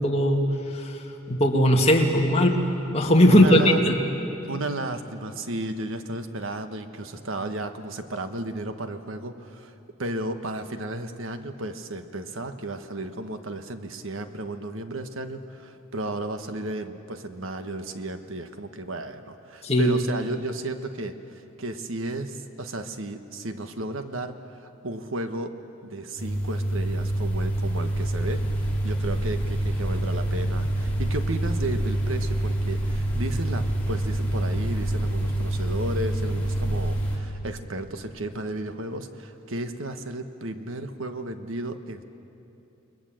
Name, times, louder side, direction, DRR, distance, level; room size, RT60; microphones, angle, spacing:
voice 1, 0.0-2.5 2.9-4.0 19.6-19.9, left 1 dB, 30° left, 1 dB, 2.2 m, -19 dB
voice 2, 3.3-3.8 4.5-9.7 10.0-25.5 25.8-42.0, right 2 dB, 80° right, 8 dB, 1.4 m, -33 dB
sound 1, 26.2-37.2, right 1 dB, 10° left, 3.7 m, -26 dB
29.0 x 21.5 x 7.8 m, 2.8 s
head